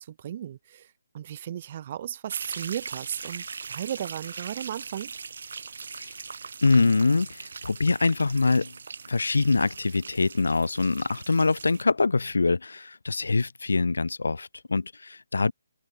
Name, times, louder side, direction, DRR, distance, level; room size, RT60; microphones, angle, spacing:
voice 1, 0.2-0.9 1.1-5.1, right 10 dB, 30° right, 0.4 m, -35 dB
sound 1, 2.3-11.8, right 5 dB, 55° right, 1.0 m, -41 dB
voice 2, 6.6-8.7 9.1-15.5, left 3 dB, 85° left, 0.3 m, -24 dB
hypercardioid pair, 170°, 0 cm